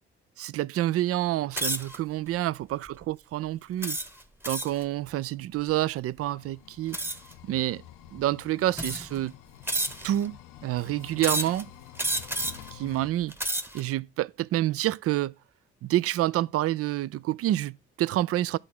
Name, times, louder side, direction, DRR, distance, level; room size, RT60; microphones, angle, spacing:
voice 1, 0.4-4.0 4.5-7.0 7.5-7.8 8.1-9.3 10.0-10.3 10.6-11.7 12.7-13.3 13.7-15.3 15.8-18.6, right 14 dB, 45° right, 0.4 m, -28 dB
sound 1, 1.5-2.0 2.6-2.9 3.8-4.8 6.9-7.3 8.2-8.3 8.7-9.2 9.7-10.3 11.2-11.6 12.0-12.7 13.2-13.8, right 1 dB, 5° right, 1.0 m, -30 dB
sound 2, 6.2-13.1, left 12 dB, 70° left, 0.6 m, -49 dB
10.5 x 3.7 x 6.1 m
figure-of-eight pair, 40°, 33 cm